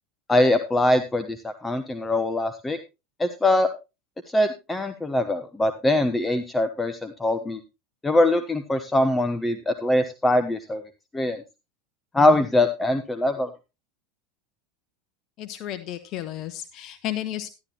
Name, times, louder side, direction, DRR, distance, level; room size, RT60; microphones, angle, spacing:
voice 1, 0.3-2.8 3.2-3.7 4.3-7.6 8.0-10.8 11.1-11.4 12.1-13.5, left 1 dB, 15° left, 10 dB, 1.0 m, -22 dB
voice 2, 15.4-17.5, left 12 dB, 50° left, 12 dB, 1.1 m, -33 dB
12.0 x 11.5 x 2.9 m, 0.27 s
hypercardioid pair, 90°, 0 cm